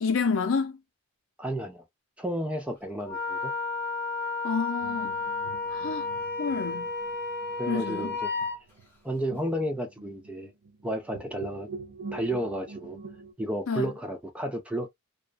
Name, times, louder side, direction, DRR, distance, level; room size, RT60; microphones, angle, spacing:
voice 1, 0.0-0.8 4.4-5.2 5.7-6.1 6.4-6.9 7.7-8.1 13.7-13.9, left 5 dB, 65° left, 0.5 m, -29 dB
voice 2, 1.4-1.8 2.2-3.5 7.6-8.3 9.0-10.5 10.8-11.7 12.1-13.0 13.4-14.9, right 1 dB, 5° right, 0.4 m, -32 dB
Wind instrument woodwind instrument, 3.1-8.6, left 4 dB, 10° left, 0.7 m, -32 dB
sound 1, 4.8-13.3, right 4 dB, 65° right, 0.6 m, -46 dB
2.4 x 2.2 x 2.3 m
head